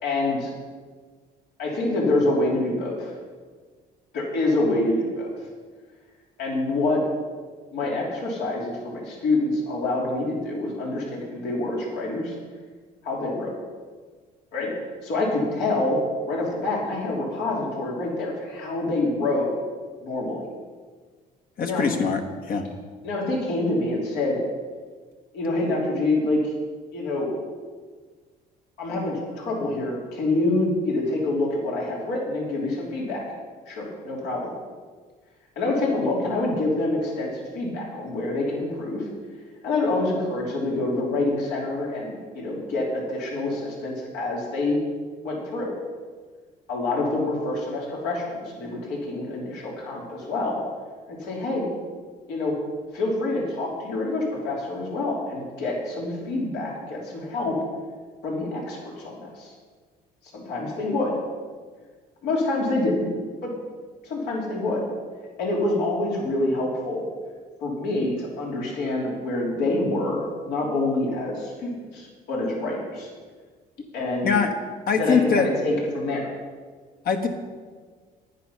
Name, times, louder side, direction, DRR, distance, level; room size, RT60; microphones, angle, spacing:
voice 1, 0.0-0.5 1.6-3.1 4.1-5.3 6.4-7.0 7.7-12.3 13.0-13.5 14.5-14.7 15.0-16.0 16.3-19.5 20.0-20.4 21.6-21.9 23.0-24.4 25.3-26.5 26.9-27.3 28.8-33.2 33.7-34.5 35.5-39.0 39.6-44.8 45.2-45.7 46.7-50.6 51.1-51.6 52.3-52.5 52.9-57.6 58.2-59.5 60.3-61.2 62.2-63.1 63.4-63.5 64.0-64.8 65.4-67.0 67.6-73.1 73.9-74.4 75.0-76.3, left 2 dB, 80° left, -3 dB, 3.4 m, -26 dB
voice 2, 21.6-22.2 22.5-22.6 74.2-74.5 74.9-75.5 77.0-77.3, left 6 dB, 60° left, 5 dB, 1.5 m, -22 dB
11.0 x 10.0 x 5.7 m, 1.5 s
cardioid pair, 110°, 17 cm